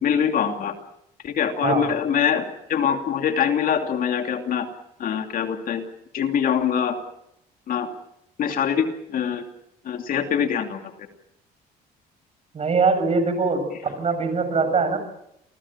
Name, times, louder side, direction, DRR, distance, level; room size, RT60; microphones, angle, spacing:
voice 1, 0.0-0.7 1.2-4.7 5.0-5.8 6.1-7.0 7.7-7.9 8.4-9.4 9.8-10.9 13.7-13.8, left 8 dB, 55° left, 5 dB, 2.7 m, -24 dB
voice 2, 12.5-15.0, right 4 dB, 40° right, 9 dB, 6.9 m, -22 dB
28.0 x 18.0 x 7.5 m, 0.80 s
cardioid pair, 110°, 17 cm